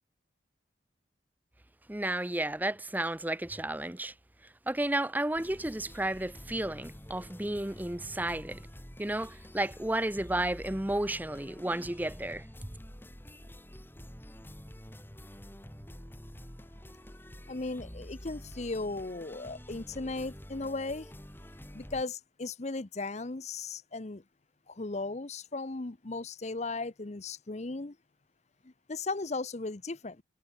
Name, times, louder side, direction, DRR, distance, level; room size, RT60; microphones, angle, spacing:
voice 1, 1.9-4.1 4.7-8.6 9.0-12.4, right 1 dB, 10° right, 0.7 m, -32 dB
sound 1, 5.3-22.0, equal, 10° left, 4.8 m, -48 dB
voice 2, 17.5-21.1 21.7-24.2 24.7-27.9 28.9-30.2, left 3 dB, 35° left, 0.8 m, -36 dB
head